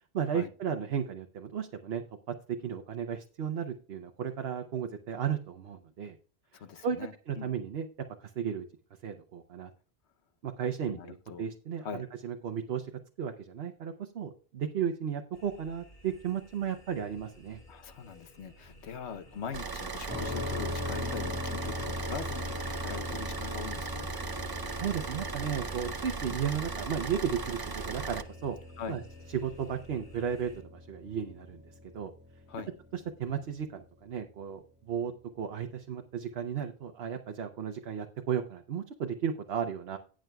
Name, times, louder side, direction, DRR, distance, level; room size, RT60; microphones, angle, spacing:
voice 1, 0.1-6.2 6.8-7.0 7.3-7.9 8.2-8.6 9.0-9.7 10.4-11.9 12.2-12.9 13.2-17.6 24.8-28.6 28.9-29.0 29.4-32.1 32.9-40.0, right 8 dB, 70° right, 1.0 m, -34 dB
voice 2, 6.5-7.5 10.9-11.5 11.8-12.0 17.7-24.1 28.8-29.0 32.5-32.7, left 6 dB, 85° left, 1.1 m, -42 dB
sound 1, 15.3-30.6, equal, 45° left, 4.1 m, -56 dB
Car / Idling, 19.5-28.2, right 4 dB, 30° right, 0.5 m, -37 dB
sound 2, 20.1-33.8, left 2 dB, 10° right, 1.7 m, -41 dB
18.5 x 6.3 x 2.3 m
omnidirectional pair, 1.1 m